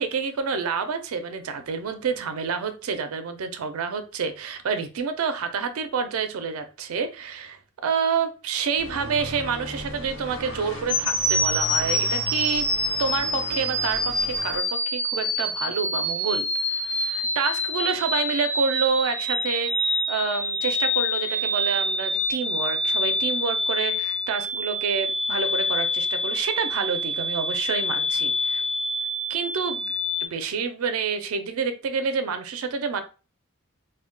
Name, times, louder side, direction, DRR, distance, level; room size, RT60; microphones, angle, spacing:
voice 1, 0.0-12.7 13.0-28.6 29.3-29.9 30.2-33.0, right 5 dB, 80° right, 9 dB, 0.4 m, -28 dB
sound 1, 8.7-14.6, right 1 dB, 75° left, 1.0 m, -37 dB
sound 2, 10.9-30.3, left 1 dB, 5° left, 0.4 m, -26 dB
2.2 x 2.1 x 3.7 m, 0.33 s
head